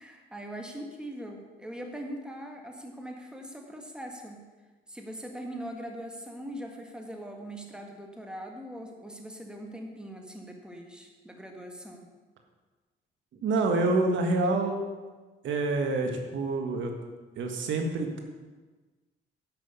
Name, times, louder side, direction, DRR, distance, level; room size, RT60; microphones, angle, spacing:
voice 1, 0.0-4.4 4.9-12.1, equal, 5° right, 2 dB, 1.9 m, -41 dB
voice 2, 13.4-14.8 15.4-16.9 17.3-18.2, right 2 dB, 70° right, 3 dB, 1.6 m, -27 dB
10.5 x 6.2 x 7.0 m, 1.3 s
cardioid pair, 90°, 20 cm